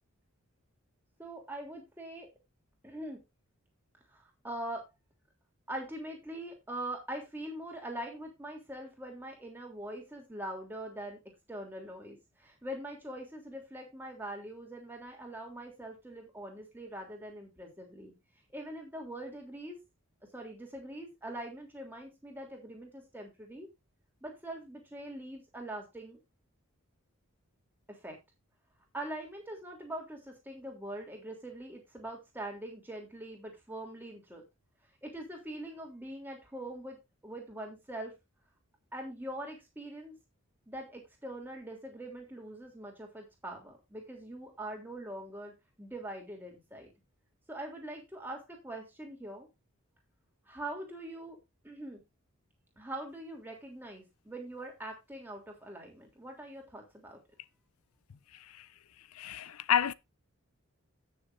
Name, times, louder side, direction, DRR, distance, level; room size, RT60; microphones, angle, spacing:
voice 1, 1.2-2.3 2.8-3.2 4.1-4.9 5.7-11.2 11.5-18.1 18.5-19.8 20.3-23.7 24.2-26.2 27.9-28.2 28.9-34.4 35.0-38.1 38.9-40.2 40.7-46.9 47.5-49.5 50.5-51.4 51.6-52.0 52.8-57.2, right 1 dB, 10° right, 3.2 m, -43 dB
voice 2, 58.3-58.7 59.1-59.9, left 9 dB, 80° left, 0.5 m, -30 dB
17.0 x 6.8 x 2.6 m
head